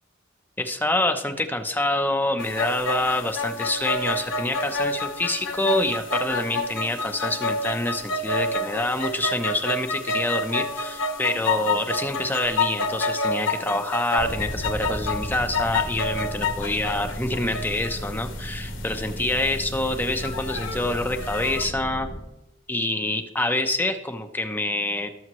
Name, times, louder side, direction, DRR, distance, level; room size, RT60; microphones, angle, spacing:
voice 1, 0.6-22.1 22.7-25.1, left 1 dB, 10° left, 5 dB, 0.8 m, -26 dB
sound 1, 2.4-21.6, left 2 dB, 75° left, 1.2 m, -29 dB
sound 2, 14.2-22.2, equal, 80° right, 3.2 m, -35 dB
20.0 x 7.2 x 3.1 m, 0.92 s
head